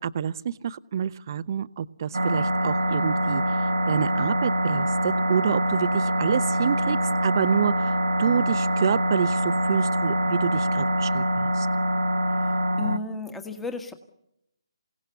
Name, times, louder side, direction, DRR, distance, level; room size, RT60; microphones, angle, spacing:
voice 1, 0.0-3.4 3.9-7.9 8.2-11.7, right 8 dB, 40° right, 16 dB, 0.8 m, -28 dB
sound 1, 2.1-13.0, right 1 dB, 85° right, 1.5 m, -24 dB
voice 2, 12.2-13.9, left 3 dB, 5° left, 7 dB, 1.5 m, -34 dB
28.0 x 17.5 x 6.8 m, 0.80 s
figure-of-eight pair, 150°, 3 cm